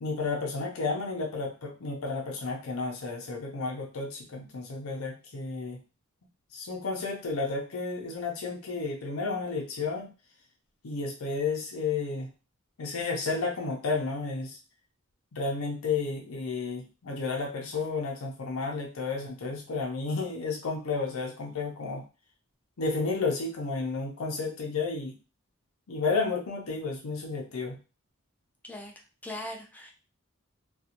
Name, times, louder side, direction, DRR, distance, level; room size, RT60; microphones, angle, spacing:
voice 1, 0.0-5.8 6.5-10.1 10.8-12.3 12.8-14.6 15.3-22.0 22.8-25.1 25.9-27.8, left 4 dB, 85° left, 1 dB, 0.6 m, -32 dB
voice 2, 28.6-29.9, left 1 dB, 10° left, 1 dB, 0.4 m, -40 dB
2.5 x 2.3 x 2.8 m, 0.32 s
head